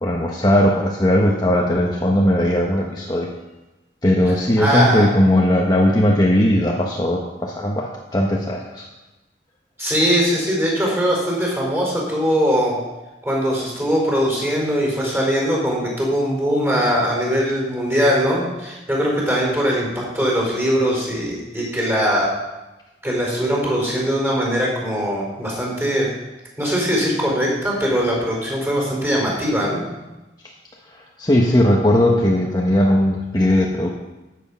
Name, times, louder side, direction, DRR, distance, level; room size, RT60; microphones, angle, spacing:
voice 1, 0.0-3.3 4.0-8.8 30.9-33.9, left 1 dB, 20° left, -1 dB, 1.2 m, -18 dB
voice 2, 4.6-5.1 9.8-12.8 13.2-22.4 23.0-26.1 26.6-29.8, equal, 15° right, -3 dB, 4.9 m, -21 dB
14.0 x 8.3 x 5.8 m, 1.1 s
head